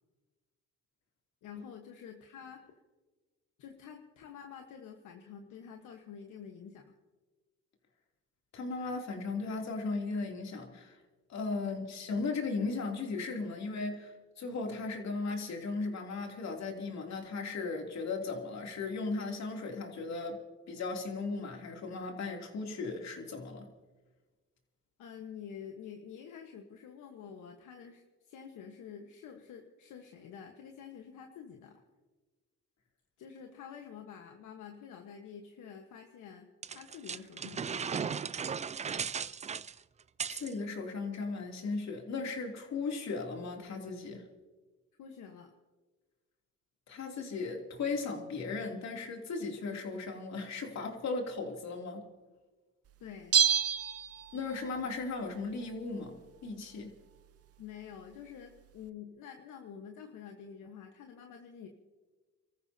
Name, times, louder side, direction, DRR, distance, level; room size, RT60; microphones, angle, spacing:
voice 1, 1.4-2.7 3.6-6.9 11.6-11.8 25.0-31.8 33.2-38.3 45.0-45.5 53.0-53.4 57.6-61.7, left 7 dB, 80° left, 3 dB, 1.4 m, -48 dB
voice 2, 8.5-11.0 11.3-20.4 20.7-23.7 40.3-44.2 46.9-52.1 54.3-56.2 56.4-56.9, left 3 dB, 60° left, 1 dB, 3.0 m, -36 dB
sound 1, 36.6-40.5, right 6 dB, 25° right, 0.4 m, -36 dB
Bell, 53.3-54.7 55.0-55.1, right 8 dB, 50° right, 0.7 m, -28 dB
30.0 x 14.0 x 2.8 m, 1.3 s
cardioid pair, 90°, 30 cm